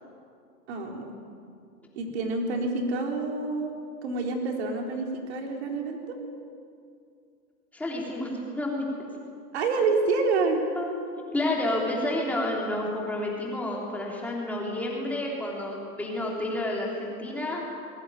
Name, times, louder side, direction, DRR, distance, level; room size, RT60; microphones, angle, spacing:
voice 1, 0.7-1.1 2.0-3.7 4.0-6.2 9.5-10.6, right 3 dB, 40° right, 2 dB, 4.1 m, -28 dB
voice 2, 7.7-8.9 10.7-10.9 11.3-17.6, left 1 dB, 5° left, -2 dB, 3.3 m, -30 dB
21.5 x 17.5 x 9.5 m, 2.4 s
hypercardioid pair, 160°, 47 cm